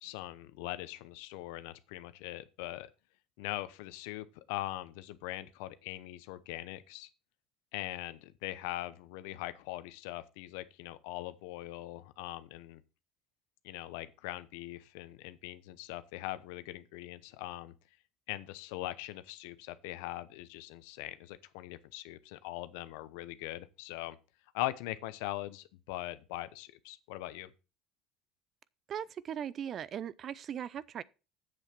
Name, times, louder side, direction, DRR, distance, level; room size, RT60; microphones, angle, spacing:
voice 1, 0.0-2.9 3.4-7.1 7.7-12.8 13.6-17.7 18.3-24.2 24.5-27.5, left 16 dB, 80° left, 0.8 m, -41 dB
voice 2, 28.9-31.0, right 9 dB, 45° right, 0.6 m, -39 dB
8.0 x 7.2 x 6.0 m
supercardioid pair, 90°, 0 cm